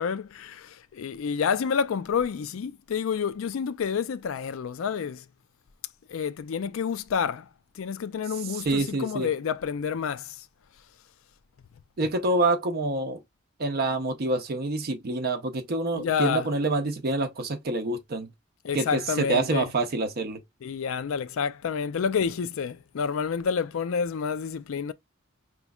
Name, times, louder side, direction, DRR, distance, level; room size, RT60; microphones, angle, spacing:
voice 1, 0.0-5.2 6.1-7.5 7.8-10.4 15.9-16.5 18.6-19.7 20.6-24.9, left 6 dB, 70° left, 0.4 m, -29 dB
voice 2, 8.4-9.3 12.0-13.2 13.6-18.3 18.7-20.4, right 2 dB, 50° right, 0.6 m, -27 dB
5.1 x 3.0 x 2.3 m
head